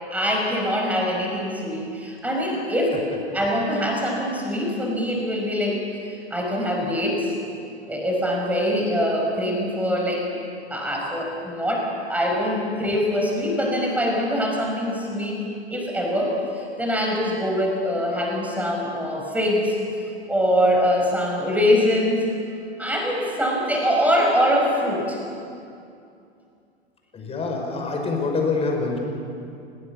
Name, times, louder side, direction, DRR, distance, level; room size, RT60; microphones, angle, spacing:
voice 1, 0.1-3.0 3.3-7.3 7.9-10.3 10.7-15.4 15.7-19.8 20.3-22.2 22.8-25.2, equal, 5° right, -1 dB, 5.6 m, -23 dB
voice 2, 27.1-29.0, left 4 dB, 20° left, 1 dB, 5.3 m, -25 dB
29.0 x 18.5 x 7.2 m, 2.5 s
figure-of-eight pair, 105°, 33 cm